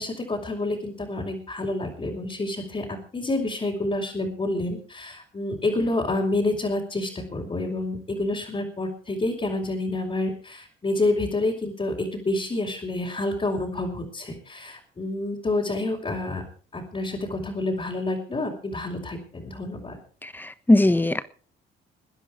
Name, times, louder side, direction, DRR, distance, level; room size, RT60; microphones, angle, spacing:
voice 1, 0.0-16.4 16.7-20.0, left 2 dB, 30° left, -3 dB, 5.1 m, -28 dB
voice 2, 20.2-21.2, left 1 dB, 10° left, 12 dB, 1.3 m, -20 dB
22.0 x 10.0 x 4.7 m, 0.42 s
cardioid pair, 90°, 20 cm